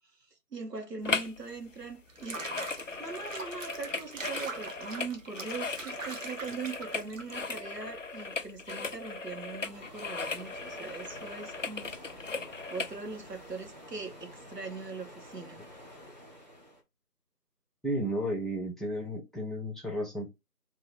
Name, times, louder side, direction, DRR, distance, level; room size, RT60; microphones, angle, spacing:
voice 1, 0.5-2.4 3.0-12.2 12.7-15.6, right 4 dB, 85° right, 1.4 m, -41 dB
sound 1, 1.0-1.4 1.7-13.0 13.5-13.6, left 4 dB, 55° left, 0.5 m, -37 dB
Water / Bathtub (filling or washing), 2.1-7.6, right 3 dB, 55° right, 0.8 m, -42 dB
sound 2, 9.7-16.8, equal, 30° right, 0.9 m, -50 dB
voice 2, 17.8-20.3, equal, ahead, 0.6 m, -33 dB
2.9 x 2.9 x 4.3 m
figure-of-eight pair, 165°, 47 cm